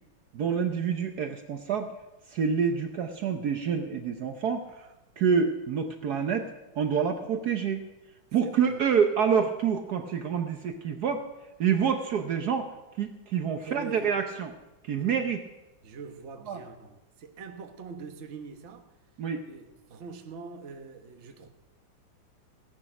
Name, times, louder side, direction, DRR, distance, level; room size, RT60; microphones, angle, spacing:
voice 1, 0.3-1.9 2.3-4.6 5.2-6.5 6.8-7.8 8.3-11.3 11.6-12.7 13.0-14.5 14.8-15.4 16.5-16.6 19.2-19.4, right 7 dB, 60° right, 1.3 m, -27 dB
voice 2, 8.4-8.8 13.7-14.2 15.8-18.9 19.5-21.5, right 5 dB, 45° right, 1.2 m, -43 dB
17.0 x 10.5 x 6.0 m
omnidirectional pair, 2.1 m